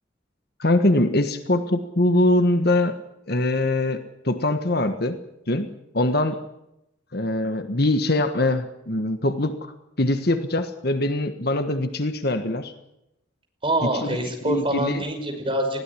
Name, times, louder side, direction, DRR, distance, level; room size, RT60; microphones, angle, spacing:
voice 1, 0.6-3.0 3.3-5.2 5.5-5.7 5.9-6.4 7.1-9.6 10.0-12.7 14.0-14.2 14.4-15.0, left 1 dB, 55° left, 8 dB, 1.5 m, -22 dB
voice 2, 13.6-15.8, right 1 dB, 25° right, 4 dB, 5.6 m, -25 dB
20.5 x 16.0 x 9.9 m, 0.87 s
head